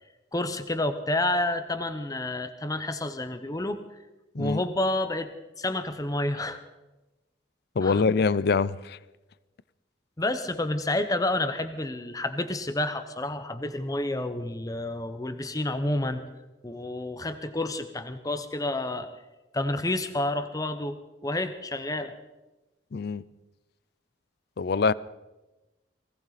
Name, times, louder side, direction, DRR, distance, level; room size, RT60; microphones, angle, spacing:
voice 1, 0.3-3.8 4.4-5.3 5.6-6.6 7.8-8.0 10.2-16.2 16.6-19.1 19.5-21.0 21.2-22.2, left 1 dB, 20° left, 0.9 m, -29 dB
voice 2, 7.8-9.0 22.9-23.2 24.6-24.9, left 4 dB, 55° left, 0.5 m, -24 dB
20.0 x 17.5 x 4.1 m
head